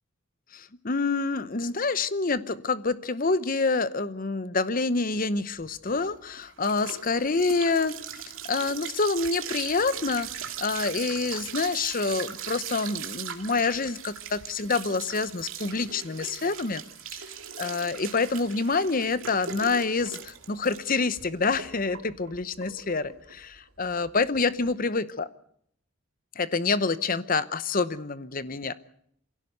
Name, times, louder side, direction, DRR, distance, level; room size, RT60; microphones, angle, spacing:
voice 1, 0.5-8.2 8.5-16.8 17.1-17.2 17.6-25.3 26.4-28.7, left 4 dB, 40° left, 15 dB, 0.8 m, -27 dB
sound 1, 5.6-24.7, right 8 dB, 70° right, 2.3 m, -40 dB
24.0 x 16.5 x 8.0 m, 0.68 s
head